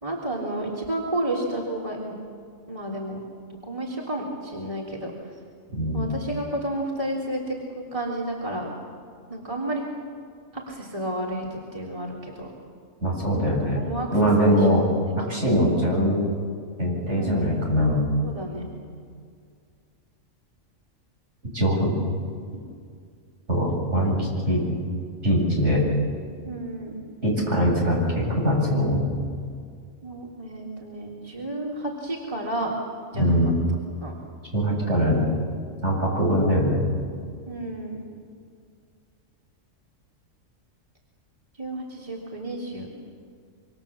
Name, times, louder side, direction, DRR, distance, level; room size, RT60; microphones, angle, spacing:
voice 1, 0.0-2.1 2.7-3.2 3.7-5.1 5.9-8.7 9.3-9.8 10.5-12.5 13.4-14.1 14.4-14.7 15.0-15.1 17.1-17.6 18.2-18.6 26.4-27.0 30.0-32.7 33.1-33.4 34.0-34.1 37.5-38.0 41.6-42.9, right 1 dB, 25° right, -4 dB, 3.5 m, -31 dB
voice 2, 5.8-6.1 13.0-13.8 14.1-14.9 15.2-16.2 16.8-18.0 21.5-21.9 23.5-24.6 25.2-25.8 27.2-29.0 33.1-33.5 34.5-35.2 35.8-36.8, equal, 65° right, -3 dB, 8.3 m, -22 dB
27.0 x 25.0 x 7.3 m, 2.1 s
omnidirectional pair, 1.3 m